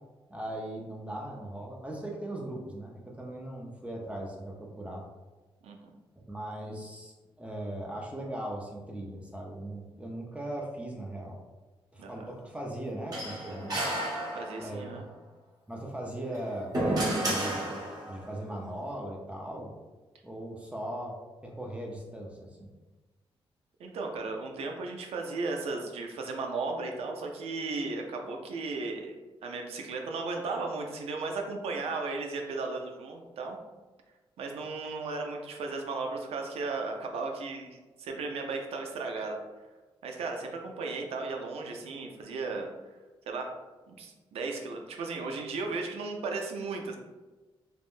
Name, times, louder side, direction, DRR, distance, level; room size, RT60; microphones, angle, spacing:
voice 1, 0.3-5.1 6.3-11.4 11.9-13.8 14.6-15.0 15.7-19.7 20.2-21.2 21.4-22.7, right 1 dB, 10° right, -1 dB, 0.5 m, -39 dB
sound 1, 13.1-14.8 16.2-18.2, right 1 dB, 40° right, 1.0 m, -31 dB
voice 2, 14.3-15.1 23.8-29.2 29.4-33.6 34.4-39.4 40.0-42.7 43.3-43.5 43.9-47.0, right 3 dB, 80° right, 2 dB, 0.5 m, -35 dB
3.4 x 2.1 x 2.5 m, 1.2 s
cardioid pair, 75°, 10 cm